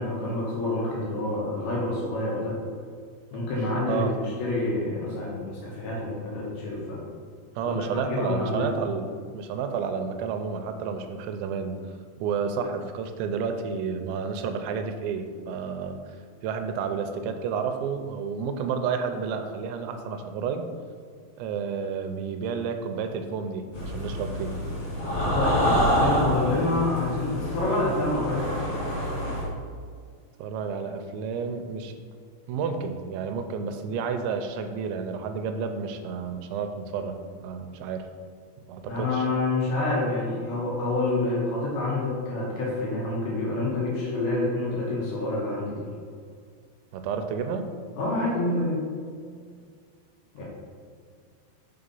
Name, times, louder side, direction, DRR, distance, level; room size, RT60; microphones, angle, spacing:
voice 1, 0.0-2.6 3.3-7.0 7.7-7.8 8.1-8.7 25.3-28.5 38.8-45.9 48.0-48.8 50.4-50.5, left 2 dB, 80° left, -5 dB, 3.4 m, -27 dB
voice 2, 7.6-9.1 9.3-11.9 12.2-16.2 16.4-20.7 21.4-24.5 30.4-32.0 32.5-38.1 38.7-39.3 46.9-47.7 50.4-50.5, right 6 dB, 90° right, 7 dB, 2.9 m, -31 dB
sound 1, 23.7-29.4, equal, 55° left, 3.0 m, -27 dB
7.0 x 3.9 x 5.3 m, 2.1 s
omnidirectional pair, 5.1 m